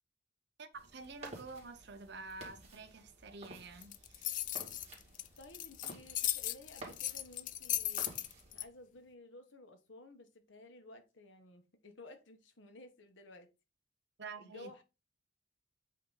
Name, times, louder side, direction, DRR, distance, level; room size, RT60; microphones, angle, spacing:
voice 1, 0.6-4.4 14.2-14.7, right 3 dB, 60° right, 0.8 m, -49 dB
sound 1, 0.7-8.7, right 2 dB, 35° right, 2.3 m, -54 dB
sound 2, 3.8-8.6, left 13 dB, 45° left, 0.3 m, -37 dB
voice 2, 5.4-8.3 8.5-13.5 14.4-14.8, left 2 dB, 80° left, 1.3 m, -55 dB
8.4 x 3.0 x 3.9 m
head